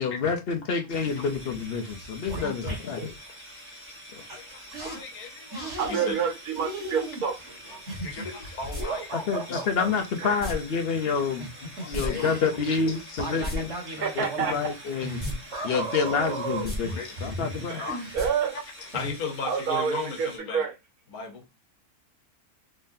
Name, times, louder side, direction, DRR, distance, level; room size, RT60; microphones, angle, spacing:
voice 1, 0.0-3.1 4.1-4.2 9.1-11.5 11.8-13.7 14.2-15.2 15.6-16.9 17.2-17.8, left 5 dB, 60° left, 0.6 m, -28 dB
voice 2, 0.9-1.3 2.4-2.8 3.3-3.7 4.3-6.2 7.7-9.2 9.5-9.6 11.8-12.3 12.9-13.5 15.7-15.9 16.8-18.1 18.5-20.6 21.1-21.4, left 4 dB, 90° left, 1.4 m, -37 dB
sound 1, 0.9-20.4, equal, 10° right, 0.9 m, -46 dB
sound 2, 1.5-1.6 1.9-3.1 4.3-4.4 4.7-5.0 5.5-6.3 6.6-9.9 11.1-18.6 18.9-19.1, right 2 dB, 50° right, 1.6 m, -36 dB
voice 3, 5.8-7.3 10.2-10.4 13.9-14.5 17.7-18.5 19.4-20.7, right 7 dB, 90° right, 1.5 m, -28 dB
sound 3, 8.7-8.8 10.4-10.5 11.9-12.1 12.3-12.4 13.3-13.6 15.2-15.4 15.7-15.8 16.5-16.8 18.2-18.3 18.6-18.7, left 1 dB, 5° left, 1.3 m, -33 dB
3.7 x 3.2 x 2.6 m
omnidirectional pair, 1.5 m